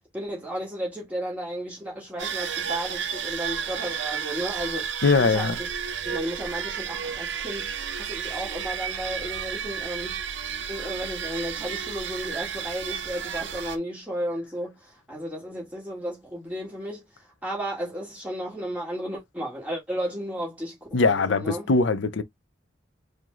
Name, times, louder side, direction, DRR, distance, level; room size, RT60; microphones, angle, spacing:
voice 1, 0.0-5.7 6.0-10.2 10.7-21.7, equal, 5° right, 1.6 m, -34 dB
sound 1, 2.2-13.8, right 7 dB, 70° right, 0.6 m, -32 dB
voice 2, 5.0-5.6 20.9-22.2, left 4 dB, 75° left, 0.6 m, -21 dB
4.8 x 2.1 x 3.7 m
head